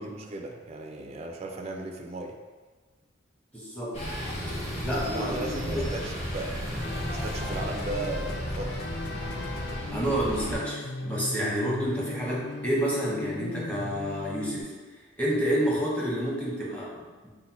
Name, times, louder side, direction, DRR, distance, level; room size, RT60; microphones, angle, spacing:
voice 1, 0.0-2.4 5.1-8.9, right 2 dB, 35° right, 2 dB, 0.3 m, -36 dB
voice 2, 3.5-4.0 4.8-5.9 9.9-14.7 15.2-17.3, equal, 5° left, -6 dB, 0.9 m, -29 dB
sound 1, 3.9-10.5, equal, 35° left, 1.0 m, -34 dB
sound 2, 6.8-14.6, left 3 dB, 55° left, 0.3 m, -38 dB
4.1 x 2.1 x 4.1 m, 1.4 s
head